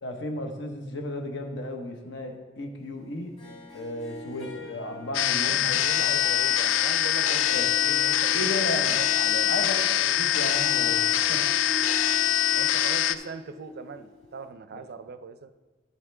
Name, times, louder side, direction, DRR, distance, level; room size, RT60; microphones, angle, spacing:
voice 1, 0.0-3.3 3.7-6.2 7.3-7.7 8.3-9.0 9.5-11.7 14.7-14.8, left 1 dB, 70° left, 4 dB, 1.1 m, -34 dB
Harp, 3.4-14.5, left 2 dB, 35° left, 2.0 m, -42 dB
sound 1, 5.1-13.2, left 11 dB, 85° left, 0.3 m, -24 dB
voice 2, 5.4-9.6 12.5-15.5, right 5 dB, 55° right, 11 dB, 0.4 m, -40 dB
10.0 x 7.3 x 3.4 m, 1.3 s
head